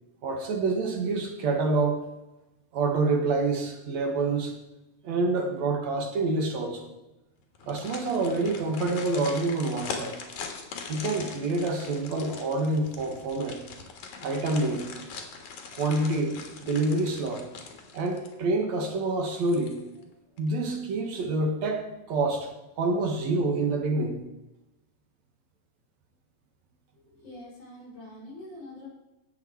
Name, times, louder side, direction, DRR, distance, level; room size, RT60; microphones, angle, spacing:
voice 1, 0.2-2.0 2.7-4.5 5.0-6.9 7.7-10.1 10.9-13.6 14.2-14.8 15.7-17.5 17.9-19.8 20.4-22.5 22.8-24.2, right 3 dB, 65° right, 3 dB, 2.7 m, -27 dB
sound 1, 7.5-18.5 18.8-18.9 19.4-20.0 20.4-20.5, left 5 dB, 75° left, 3.1 m, -41 dB
voice 2, 27.0-28.9, left 1 dB, 55° left, -6 dB, 6.0 m, -45 dB
18.0 x 7.0 x 4.6 m, 0.99 s
omnidirectional pair, 3.4 m